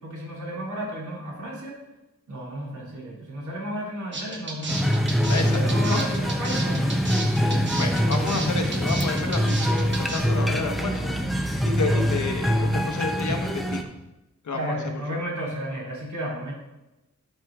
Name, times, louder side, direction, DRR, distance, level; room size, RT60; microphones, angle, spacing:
voice 1, 0.0-1.8 2.3-5.0 5.4-7.2 14.5-16.5, equal, 80° right, -3 dB, 2.6 m, -33 dB
sound 1, 4.1-10.2, right 3 dB, 40° right, 1.1 m, -33 dB
sound 2, 4.7-13.8, equal, ahead, 0.6 m, -24 dB
voice 2, 5.3-5.6 5.9-6.0 7.8-11.1 11.6-13.8 14.4-14.8, left 3 dB, 75° left, 4 dB, 1.1 m, -30 dB
12.0 x 4.6 x 3.6 m, 0.98 s
wide cardioid pair, 160°, 30 cm